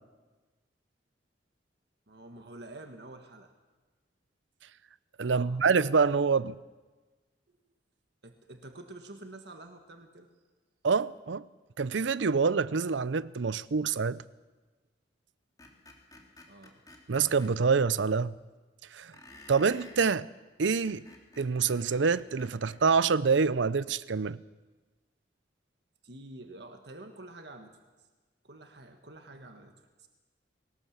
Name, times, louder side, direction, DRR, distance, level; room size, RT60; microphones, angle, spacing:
voice 1, 2.1-3.5 5.2-5.6 8.2-10.3 16.2-16.8 26.0-28.1 28.4-30.1, right 2 dB, 60° right, 1.5 m, -48 dB
voice 2, 5.2-6.6 10.8-11.4 11.8-14.2 17.1-18.4 18.9-19.1 19.5-20.3 20.6-21.0 21.4-24.4, right 5 dB, 80° right, 0.6 m, -26 dB
Screech, 15.6-17.5 19.1-20.0 20.6-22.8, left 2 dB, 20° left, 2.8 m, -52 dB
21.0 x 19.0 x 7.3 m
head